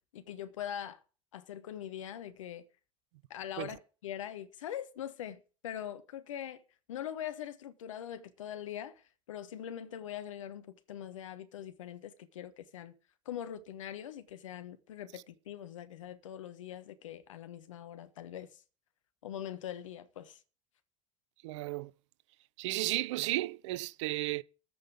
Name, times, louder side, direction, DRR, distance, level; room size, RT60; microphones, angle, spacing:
voice 1, 0.1-1.0 1.3-2.6 3.3-6.6 6.9-9.0 9.3-12.9 13.2-18.5 19.2-20.4, left 10 dB, 70° left, 1.2 m, -42 dB
voice 2, 21.4-21.9 22.6-24.4, right 18 dB, 65° right, 0.5 m, -34 dB
13.5 x 5.5 x 8.2 m
figure-of-eight pair, 70°, 17 cm